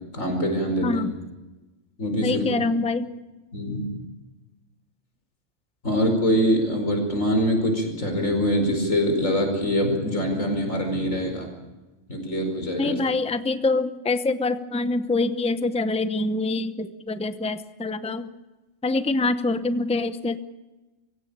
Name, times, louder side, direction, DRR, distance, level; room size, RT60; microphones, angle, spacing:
voice 1, 0.1-1.0 2.0-2.5 3.5-3.9 5.8-11.5 12.1-13.0, equal, 80° left, 4 dB, 5.5 m, -24 dB
voice 2, 0.8-1.1 2.2-3.1 12.8-18.3 18.8-20.4, left 3 dB, 5° left, 11 dB, 0.7 m, -25 dB
24.0 x 16.5 x 8.8 m, 1.1 s
omnidirectional pair, 1.3 m